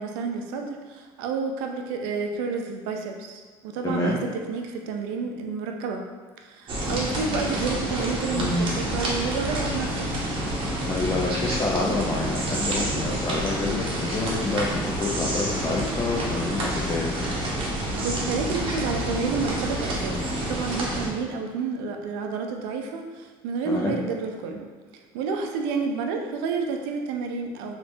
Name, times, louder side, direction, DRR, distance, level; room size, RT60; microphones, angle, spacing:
voice 1, 0.0-6.0 6.4-10.3 18.0-27.7, right 4 dB, 90° right, 3 dB, 0.4 m, -30 dB
voice 2, 3.8-4.2 8.3-8.9 10.9-17.1 23.7-24.0, left 2 dB, 30° left, -3 dB, 0.5 m, -28 dB
sound 1, 6.7-21.1, right 1 dB, 50° right, 0.9 m, -28 dB
3.2 x 2.9 x 2.6 m, 1.4 s
supercardioid pair, 90°, 11 cm